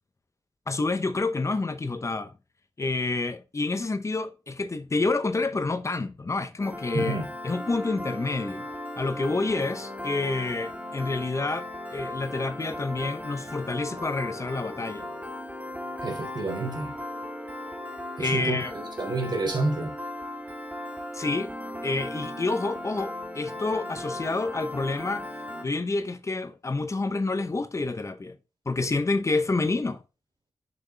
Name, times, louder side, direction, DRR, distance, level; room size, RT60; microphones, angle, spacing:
voice 1, 0.7-2.3 2.8-8.7 9.0-15.1 18.2-18.7 21.1-21.5 21.8-25.3 25.6-28.4 28.7-30.0, left 3 dB, 35° left, 0.8 m, -28 dB
Piano, 6.6-25.7, left 1 dB, 15° right, 1.6 m, -37 dB
voice 2, 6.9-7.3 16.0-16.9 18.2-18.6 19.0-19.9, right 3 dB, 55° right, 3.2 m, -28 dB
7.0 x 6.2 x 3.4 m
wide cardioid pair, 85°, 9 cm